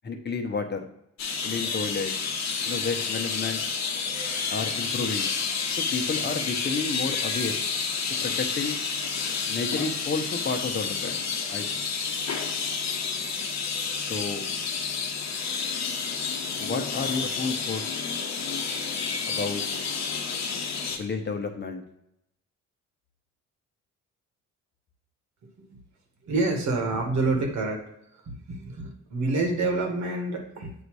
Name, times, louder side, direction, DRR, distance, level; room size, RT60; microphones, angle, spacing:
voice 1, 0.0-0.9 1.4-2.1 2.6-3.6 4.5-5.3 5.8-7.6 8.2-8.8 9.5-11.2 11.5-11.6 14.1-14.5 16.6-17.8 19.3-19.6 20.9-21.8, left 4 dB, 35° left, 4 dB, 0.9 m, -31 dB
sound 1, 1.2-21.0, left 5 dB, 60° left, 1.0 m, -30 dB
voice 2, 25.4-25.8 26.2-27.8 28.3-30.7, right 2 dB, 65° right, 2 dB, 1.5 m, -27 dB
7.9 x 2.7 x 4.7 m, 0.79 s
cardioid pair, 90°, 30 cm